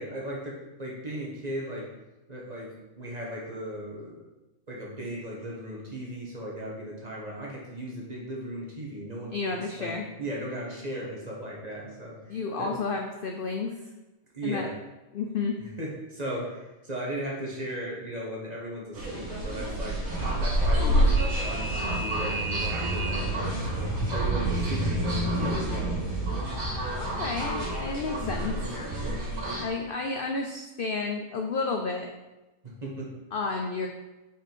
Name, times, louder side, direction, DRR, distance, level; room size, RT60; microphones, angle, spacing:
voice 1, 0.0-1.9 2.3-2.7 2.9-4.3 4.7-9.4 9.8-12.2 12.6-12.8 14.3-14.7 15.8-25.9 32.6-33.1, right 1 dB, 30° right, -3 dB, 1.4 m, -36 dB
voice 2, 9.3-10.1 12.3-13.8 14.4-14.7 15.1-15.6 27.0-28.6 29.6-32.1 33.3-33.9, left 4 dB, 60° left, 3 dB, 0.6 m, -31 dB
sound 1, 18.9-29.7, right 1 dB, 70° right, 2.2 m, -28 dB
5.4 x 5.0 x 4.5 m, 1.1 s
omnidirectional pair, 1.5 m